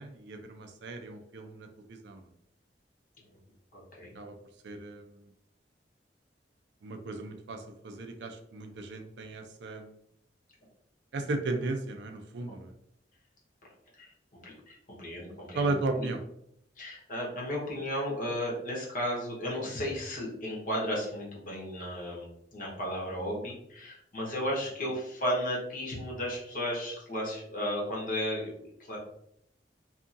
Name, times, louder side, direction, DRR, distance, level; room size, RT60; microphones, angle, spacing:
voice 1, 0.0-2.3 4.1-4.4 4.6-5.3 6.8-9.9 11.1-12.7 15.5-16.2, right 3 dB, 75° right, 6 dB, 0.4 m, -35 dB
voice 2, 3.7-4.1 12.5-12.6 14.0-14.1 14.5-15.7 16.0-16.1 16.8-28.5 28.8-29.0, equal, 50° left, -3 dB, 0.9 m, -34 dB
2.7 x 2.5 x 2.5 m, 0.75 s
head